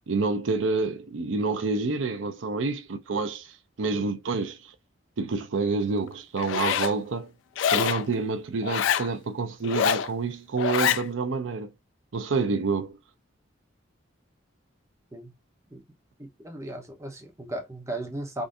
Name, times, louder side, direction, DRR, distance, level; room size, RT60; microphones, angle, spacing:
voice 1, 0.1-3.5 3.8-4.7 5.2-7.3 7.7-11.7 12.1-13.0, right 4 dB, 80° right, 0.6 m, -28 dB
Zipper (clothing), 6.4-6.9 7.6-8.0 8.6-9.1 9.6-10.1 10.6-11.0, left 8 dB, 70° left, 0.3 m, -25 dB
voice 2, 16.2-18.4, right 1 dB, 15° right, 0.7 m, -36 dB
3.6 x 2.5 x 2.6 m
head